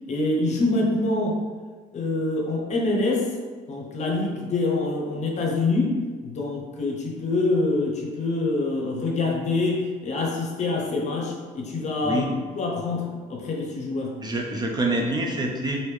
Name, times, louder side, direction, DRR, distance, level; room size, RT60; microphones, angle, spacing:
voice 1, 0.1-1.4 1.9-3.3 3.7-12.2 12.5-14.1, left 2 dB, 45° left, 0 dB, 0.7 m, -25 dB
voice 2, 14.2-15.9, right 2 dB, 25° right, 0 dB, 0.4 m, -26 dB
3.3 x 2.6 x 3.1 m, 1.5 s
cardioid pair, 110°, 17 cm